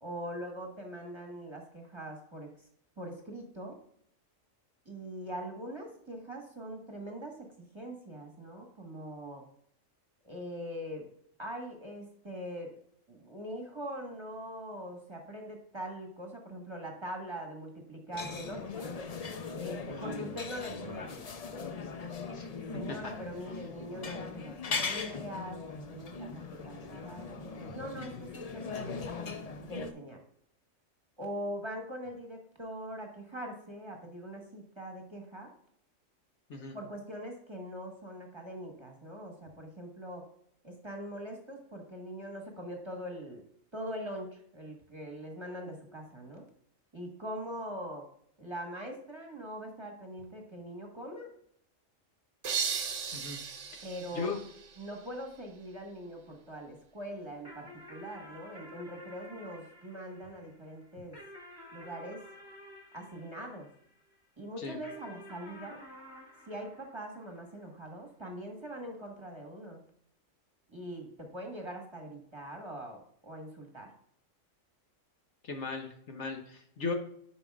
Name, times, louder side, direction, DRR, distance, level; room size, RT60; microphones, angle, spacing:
voice 1, 0.0-2.5 3.0-3.8 4.8-7.5 7.7-9.4 10.2-11.1 11.4-12.7 13.1-18.9 19.6-21.2 22.7-29.3 29.6-30.2 31.2-35.5 36.7-40.2 40.6-43.4 43.7-46.4 46.9-48.0 48.4-51.3 53.8-54.3 54.8-61.2 61.7-62.2 62.9-63.7 64.4-65.8 66.5-69.8 70.7-73.9, equal, 20° right, 1 dB, 1.3 m, -42 dB
sound 1, 18.1-29.9, left 4 dB, 45° left, 0.5 m, -39 dB
voice 2, 27.7-28.2 36.5-36.8 53.1-53.4 54.1-54.4 64.6-64.8 75.4-76.9, left 4 dB, 60° left, 4 dB, 1.2 m, -38 dB
sound 2, 52.4-55.2, right 7 dB, 65° right, 1.2 m, -36 dB
sound 3, 57.4-64.1 64.8-67.6, left 1 dB, 20° left, 1.8 m, -51 dB
11.0 x 5.2 x 2.4 m, 0.67 s
omnidirectional pair, 1.4 m